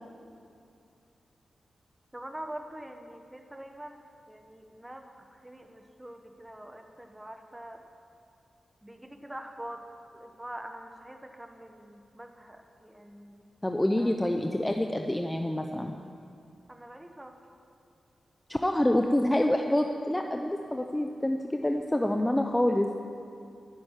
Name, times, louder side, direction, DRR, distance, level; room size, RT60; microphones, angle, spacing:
voice 1, 2.1-7.8 8.8-9.8 10.1-13.4 14.0-14.2 16.7-17.4, right 1 dB, 10° right, 4 dB, 1.1 m, -44 dB
voice 2, 13.6-15.9 18.5-22.9, left 1 dB, 10° left, 3 dB, 0.6 m, -27 dB
12.0 x 10.5 x 9.7 m, 2.5 s
wide cardioid pair, 160°, 0 cm